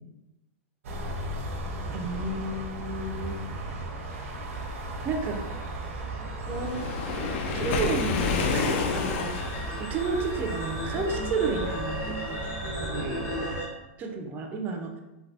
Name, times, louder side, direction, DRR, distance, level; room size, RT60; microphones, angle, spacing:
sound 1, 0.8-13.6, right 2 dB, 80° right, 0.6 m, -36 dB
voice 1, 1.9-3.4 5.0-5.4 6.4-6.9 7.5-9.5 9.8-12.0 12.3-13.2 14.0-14.9, right 3 dB, 25° right, 3 dB, 0.4 m, -32 dB
sound 2, 4.4-13.7, equal, 35° left, 1.0 m, -37 dB
Waves surf, 6.5-9.8, left 5 dB, 55° left, 0.4 m, -29 dB
3.3 x 2.6 x 2.6 m, 0.97 s
supercardioid pair, 145°, 7 cm